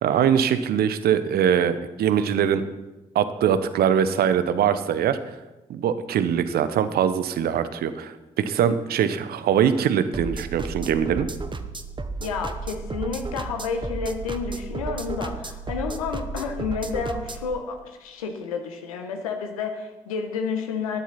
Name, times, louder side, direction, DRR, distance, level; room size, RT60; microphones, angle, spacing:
voice 1, 0.0-2.6 3.1-5.2 5.7-11.3, right 8 dB, 60° right, 12 dB, 0.8 m, -22 dB
sound 1, 10.1-17.5, right 3 dB, 25° right, 1.0 m, -33 dB
voice 2, 12.2-21.0, left 5 dB, 85° left, 6 dB, 1.1 m, -30 dB
14.0 x 10.5 x 4.2 m, 1.1 s
hypercardioid pair, 40°, 18 cm